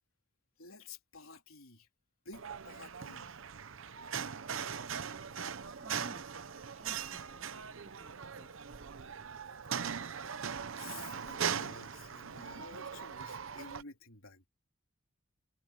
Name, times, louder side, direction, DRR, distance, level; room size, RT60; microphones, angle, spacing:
voice 1, 0.6-1.9 2.2-3.4 9.8-10.0 10.2-10.3 10.7-14.5, left 4 dB, 75° left, 3.8 m, -52 dB
sound 1, 2.3-13.8, right 7 dB, 70° right, 0.8 m, -40 dB
voice 2, 5.7-9.3, right 1 dB, 35° right, 3.9 m, -57 dB
head